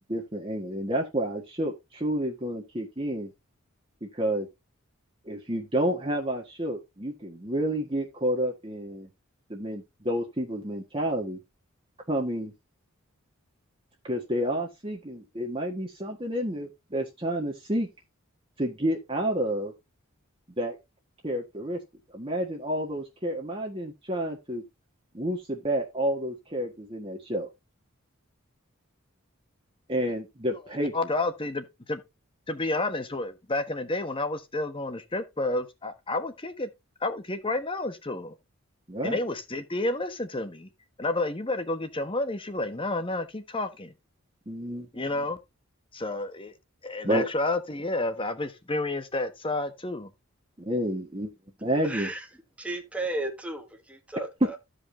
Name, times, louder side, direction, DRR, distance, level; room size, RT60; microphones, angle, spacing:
voice 1, 0.1-3.3 4.0-4.5 5.2-9.1 9.5-11.4 12.1-12.5 14.0-17.9 18.6-19.7 20.6-20.8 21.2-21.8 22.1-24.6 25.1-27.5 29.9-30.9 38.9-39.2 44.5-44.9 47.0-47.3 50.6-51.3 51.6-52.1, right 1 dB, 25° right, 1.6 m, -30 dB
voice 2, 30.9-32.0 32.5-36.7 37.0-38.3 39.0-40.7 41.0-43.9 44.9-45.4 45.9-46.5 46.8-50.1, left 2 dB, 25° left, 1.2 m, -30 dB
voice 3, 51.8-52.3 52.6-54.6, right 2 dB, 5° right, 1.4 m, -34 dB
15.0 x 5.2 x 2.8 m
head